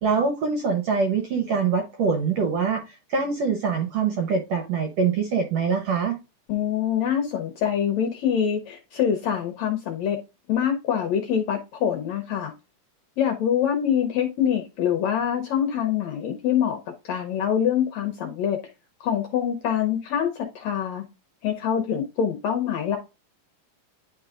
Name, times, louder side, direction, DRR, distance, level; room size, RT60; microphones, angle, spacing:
voice 1, 0.0-2.8 3.1-6.2, right 5 dB, 70° right, 1.7 m, -24 dB
voice 2, 6.5-10.2 10.5-12.5 13.2-16.8 17.0-18.6 19.0-21.0 21.4-23.0, left 9 dB, 75° left, 1.7 m, -25 dB
10.5 x 3.9 x 2.5 m
omnidirectional pair, 4.0 m